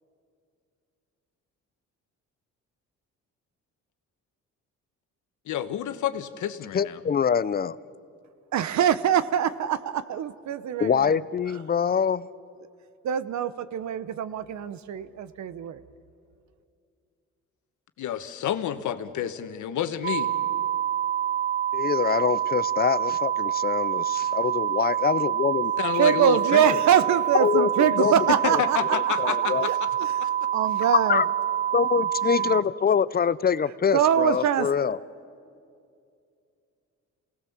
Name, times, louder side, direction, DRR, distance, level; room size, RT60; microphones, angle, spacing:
voice 1, 5.4-7.0 18.0-20.3 25.8-26.8 27.9-28.0 28.3-29.9 30.2-30.3 32.2-32.6, left 10 dB, 75° left, 1.2 m, -30 dB
voice 2, 6.7-7.8 10.8-12.3 21.7-25.7 27.3-28.1 28.5-28.6 29.2-29.7 31.1-31.2 31.7-35.0, left 7 dB, 30° left, 0.5 m, -25 dB
voice 3, 8.5-11.2 13.0-15.8 25.9-28.8 29.2-29.3 29.6-30.1 30.5-31.2 33.9-34.7, right 9 dB, 65° right, 1.0 m, -24 dB
sound 1, 20.0-32.6, right 10 dB, 35° right, 0.9 m, -26 dB
28.0 x 18.5 x 7.3 m
cardioid pair, 90°, 30 cm